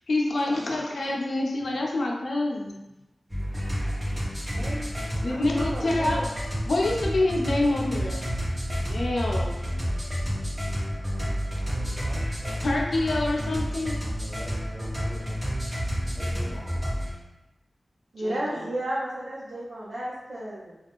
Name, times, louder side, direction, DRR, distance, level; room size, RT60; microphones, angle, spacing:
voice 1, 0.1-2.8 5.2-6.2 6.6-8.3 8.9-9.7 12.6-14.0 18.2-18.6, left 2 dB, 80° left, -1 dB, 0.5 m, -26 dB
sound 1, 3.3-17.1, equal, 25° right, 1.2 m, -30 dB
voice 2, 4.5-4.9 5.3-6.2 18.1-20.8, right 1 dB, 70° right, -8 dB, 0.7 m, -33 dB
voice 3, 11.7-12.6 14.2-15.4 16.1-16.8, left 1 dB, 50° left, -3 dB, 0.8 m, -45 dB
2.4 x 2.3 x 3.5 m, 0.97 s
wide cardioid pair, 55°, 0 cm